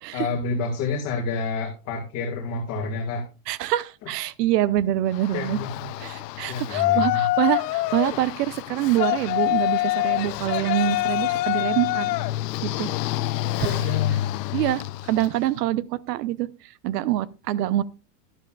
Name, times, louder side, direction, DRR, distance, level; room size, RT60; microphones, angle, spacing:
voice 1, 0.1-3.2 5.3-5.9 6.5-7.3 13.6-14.2, left 4 dB, 30° left, 2.1 m, -29 dB
voice 2, 3.5-5.6 6.0-12.1 12.6-12.9 13.6-13.7 14.5-16.5 16.8-17.8, right 13 dB, 80° right, 0.9 m, -25 dB
Yell, 5.1-15.4, left 16 dB, 85° left, 0.6 m, -26 dB
12.5 x 11.0 x 2.4 m
supercardioid pair, 165°, 48 cm